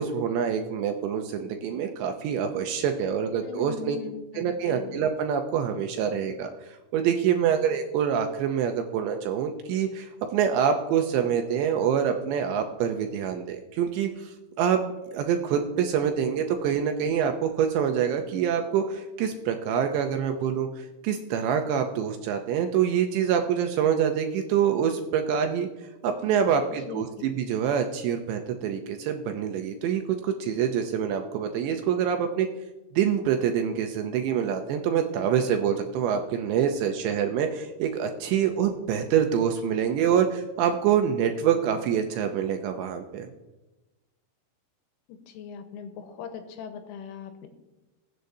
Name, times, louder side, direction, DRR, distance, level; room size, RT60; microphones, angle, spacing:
voice 1, 0.0-4.0 4.4-14.8 15.1-25.7 26.0-32.5 32.9-43.3, right 8 dB, 80° right, 5 dB, 2.6 m, -26 dB
voice 2, 3.4-5.0 26.9-27.4 45.1-47.5, left 7 dB, 80° left, 6 dB, 3.5 m, -40 dB
22.0 x 7.8 x 2.7 m, 1.1 s
omnidirectional pair, 5.6 m